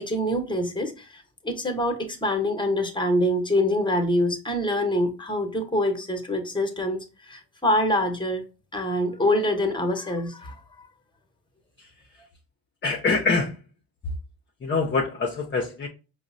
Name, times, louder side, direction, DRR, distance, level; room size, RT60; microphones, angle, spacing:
voice 1, 0.0-8.4 8.7-10.9, left 1 dB, 10° left, 0.9 m, -25 dB
voice 2, 12.8-13.6 14.6-15.9, left 4 dB, 25° left, 0.6 m, -24 dB
4.7 x 2.1 x 2.5 m
supercardioid pair, 60°, 41 cm